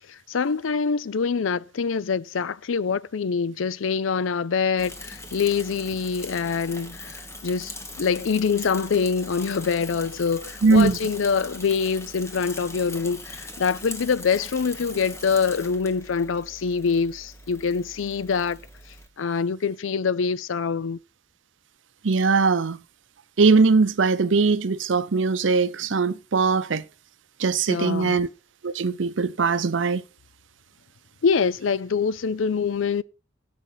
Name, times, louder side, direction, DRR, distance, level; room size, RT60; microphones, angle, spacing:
voice 1, 0.1-18.6 19.2-21.0 27.7-28.2 31.2-33.0, left 5 dB, 90° left, 0.5 m, -25 dB
Bicycle / Mechanisms, 4.8-19.1, left 2 dB, 15° left, 1.5 m, -40 dB
voice 2, 10.6-11.0 22.0-22.8 23.4-26.8 27.4-28.3 28.6-30.0, right 4 dB, 70° right, 0.6 m, -20 dB
17.5 x 6.1 x 4.0 m
head